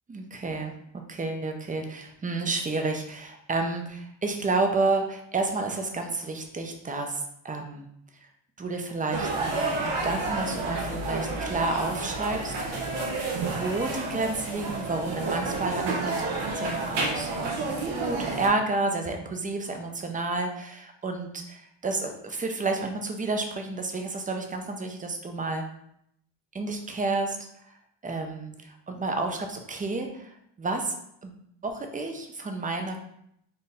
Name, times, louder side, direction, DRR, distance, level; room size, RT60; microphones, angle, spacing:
voice 1, 0.1-0.7 1.1-7.8 8.6-12.5 13.3-25.6 26.5-27.4 27.6-27.8 28.0-31.0 31.2-31.3 31.6-33.0, right 3 dB, 15° right, 4 dB, 0.5 m, -30 dB
sound 1, 9.1-18.5, right 3 dB, 85° right, 1.0 m, -30 dB
4.3 x 2.6 x 3.3 m, 0.74 s
cardioid pair, 105°, 47 cm